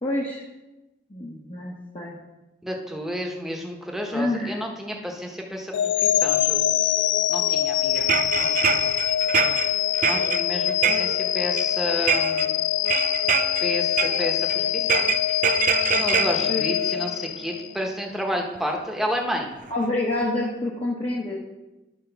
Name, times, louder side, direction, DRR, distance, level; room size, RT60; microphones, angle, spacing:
voice 1, 0.0-0.4 1.1-2.2 4.1-4.6 16.5-16.6 19.7-21.3, left 2 dB, 30° left, -3 dB, 1.0 m, -27 dB
voice 2, 2.6-6.9 7.3-8.1 8.4-8.7 9.4-9.6 10.0-12.6 13.6-15.0 15.8-19.5, equal, ahead, 1 dB, 1.0 m, -31 dB
sound 1, 5.7-17.8, left 11 dB, 80° left, 0.3 m, -24 dB
sound 2, 8.0-11.7 12.0-12.5 12.9-13.7 14.0-14.6 14.9-17.5 18.6-18.7 19.7-19.8 20.2-20.3, right 9 dB, 45° right, 0.4 m, -25 dB
11.0 x 4.4 x 5.8 m, 1.0 s
head